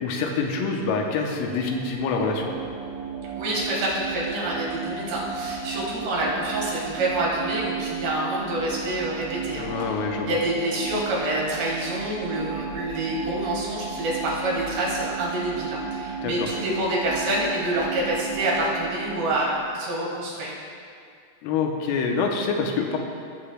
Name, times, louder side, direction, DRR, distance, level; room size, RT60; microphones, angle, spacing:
voice 1, 0.0-2.5 9.5-10.4 16.2-16.3 21.4-23.0, left 5 dB, 90° left, 2 dB, 3.3 m, -26 dB
sound 1, 1.0-19.8, right 6 dB, 85° right, 3.2 m, -34 dB
voice 2, 3.4-20.5, right 1 dB, 65° right, -5 dB, 3.5 m, -27 dB
18.0 x 7.7 x 2.2 m, 2.3 s
omnidirectional pair, 5.8 m